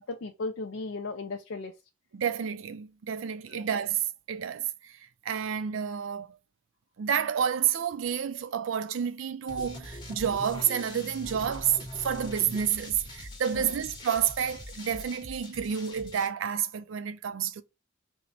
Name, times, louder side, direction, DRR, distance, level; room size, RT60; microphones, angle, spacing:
voice 1, 0.0-1.7 3.5-3.7 13.5-13.8, left 3 dB, 85° left, 0.5 m, -36 dB
voice 2, 2.1-4.9 5.3-6.3 7.0-17.6, right 8 dB, 90° right, 0.4 m, -30 dB
sound 1, 9.5-16.3, left 1 dB, 25° left, 0.9 m, -42 dB
4.4 x 2.1 x 3.9 m
head